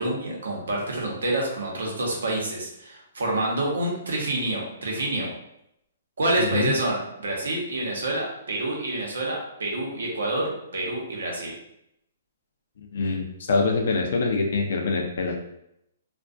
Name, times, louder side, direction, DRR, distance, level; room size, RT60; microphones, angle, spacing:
voice 1, 0.0-5.3 6.2-11.5, right 1 dB, 85° right, -2 dB, 0.8 m, -27 dB
voice 2, 6.4-6.7 12.9-15.4, left 4 dB, 70° left, 2 dB, 0.4 m, -24 dB
2.4 x 2.1 x 2.4 m, 0.79 s
hypercardioid pair, 140°, 0 cm